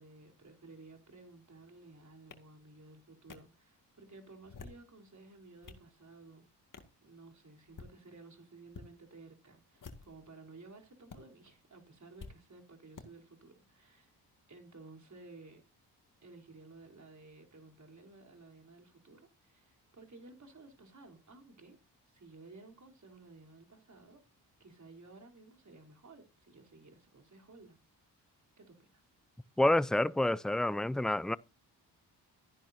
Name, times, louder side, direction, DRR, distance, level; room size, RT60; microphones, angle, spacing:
voice 1, 0.0-6.4 7.0-14.1 14.5-15.6 16.2-21.8 22.1-24.2 24.6-27.8 28.6-29.0, right 3 dB, 40° right, 3.7 m, -55 dB
sound 1, 2.3-2.4 3.3-3.4 4.4-4.9 5.4-5.9 6.7-7.0 7.6-7.9 8.7-8.9 9.7-10.2 11.1-11.2 12.2-12.3 13.0-13.1, left 4 dB, 45° left, 2.2 m, -49 dB
voice 2, 29.6-31.4, left 1 dB, ahead, 0.5 m, -28 dB
14.0 x 10.0 x 2.7 m
supercardioid pair, 50°, 43 cm